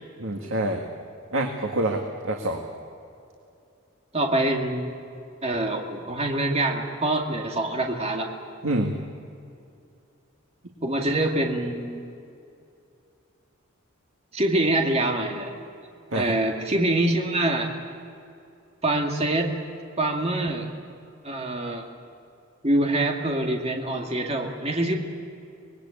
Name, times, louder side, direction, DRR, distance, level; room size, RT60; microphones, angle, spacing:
voice 1, 0.2-0.8 1.3-2.6 8.6-9.0 16.1-16.3, right 1 dB, 80° right, 2 dB, 2.0 m, -26 dB
voice 2, 4.1-4.9 5.4-8.3 10.8-12.0 14.3-15.5 16.1-17.7 18.8-19.6 20.0-20.7 21.2-21.9 22.6-24.9, right 1 dB, 30° right, 2 dB, 2.1 m, -25 dB
25.0 x 20.5 x 8.7 m, 2.6 s
head